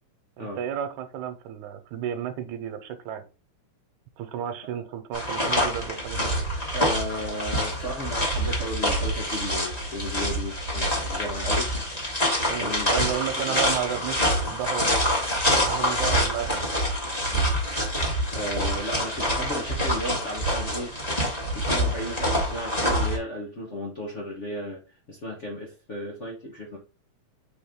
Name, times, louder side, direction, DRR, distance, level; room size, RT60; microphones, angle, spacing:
voice 1, 0.4-3.2 4.2-6.3 12.5-15.1 15.6-16.8, right 9 dB, 80° right, 8 dB, 2.2 m, -32 dB
sound 1, 5.1-23.2, equal, 15° left, 1.6 m, -26 dB
voice 2, 6.7-11.7 12.5-13.6 17.3-17.5 18.3-20.9 21.5-24.8 25.1-26.8, equal, 80° left, -2 dB, 0.6 m, -34 dB
6.2 x 4.1 x 3.7 m, 0.32 s
omnidirectional pair, 3.5 m